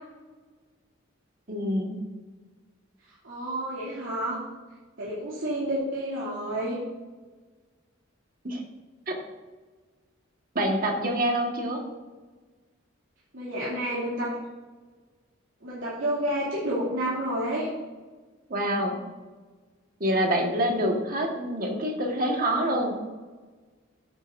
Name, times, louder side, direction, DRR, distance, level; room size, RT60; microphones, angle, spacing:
voice 1, 1.5-2.0 8.4-8.6 9.1-9.2 10.5-11.8 18.5-19.0 20.0-23.0, equal, 45° right, 1 dB, 1.6 m, -26 dB
voice 2, 3.1-4.4 5.0-6.8 13.3-14.3 15.6-17.7 22.4-22.9, right 1 dB, 80° right, -8 dB, 2.7 m, -30 dB
13.0 x 9.2 x 2.6 m, 1.3 s
head